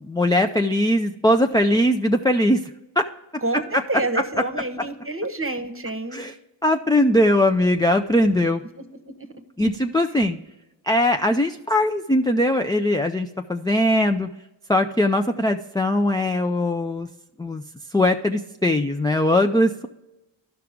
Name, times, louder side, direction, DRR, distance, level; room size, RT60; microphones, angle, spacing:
voice 1, 0.0-2.6 3.0-3.1 6.1-6.3 6.6-8.6 9.6-10.4 10.9-14.3 14.7-17.1 17.4-17.6 17.9-19.9, left 1 dB, 10° left, 4 dB, 0.4 m, -20 dB
voice 2, 3.4-6.2 8.8-8.9 9.2-9.4, right 2 dB, 30° right, 8 dB, 1.0 m, -28 dB
12.0 x 5.8 x 3.6 m, 0.97 s
wide cardioid pair, 45°, 47 cm